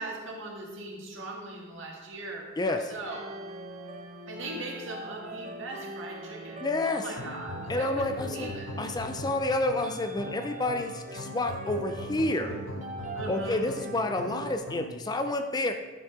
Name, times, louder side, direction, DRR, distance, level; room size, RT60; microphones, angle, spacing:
voice 1, 0.0-3.2 4.3-8.7 13.1-13.6, right 2 dB, 65° right, -1 dB, 1.8 m, -39 dB
voice 2, 2.6-2.9 6.6-7.1 7.7-8.5 8.8-12.6 13.3-15.7, left 2 dB, 20° left, 7 dB, 0.4 m, -29 dB
sound 1, 3.0-14.6, right 1 dB, 35° right, 0.7 m, -42 dB
sound 2, 7.2-15.0, left 1 dB, 65° left, 0.8 m, -40 dB
10.0 x 6.2 x 3.7 m, 1.3 s
head